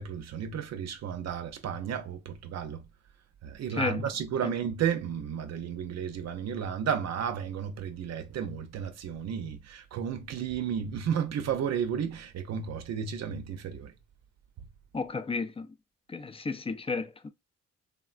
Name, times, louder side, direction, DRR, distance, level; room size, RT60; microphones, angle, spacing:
voice 1, 0.0-2.8 3.4-13.9, right 8 dB, 60° right, 0.6 m, -33 dB
voice 2, 14.9-15.7 16.1-17.3, left 4 dB, 20° left, 0.4 m, -32 dB
3.5 x 2.1 x 2.4 m
cardioid pair, 90°, 30 cm